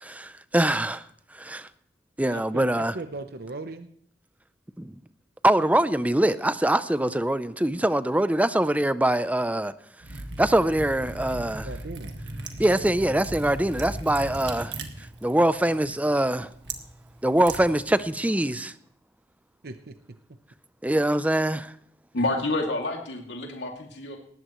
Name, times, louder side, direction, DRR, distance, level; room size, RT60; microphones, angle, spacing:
voice 1, 0.0-1.0 1.3-1.7 2.2-3.0 4.8-4.9 5.4-9.7 10.4-11.7 12.6-14.7 15.2-16.5 17.2-18.7 20.8-21.7, right 1 dB, 10° right, 0.6 m, -23 dB
voice 2, 2.3-3.9 11.6-12.2 19.6-19.9, right 2 dB, 60° right, 0.8 m, -38 dB
Liquid, 10.0-18.3, right 2 dB, 80° right, 1.7 m, -38 dB
voice 3, 22.1-24.2, left 2 dB, 85° left, 2.5 m, -28 dB
19.0 x 14.5 x 3.1 m
head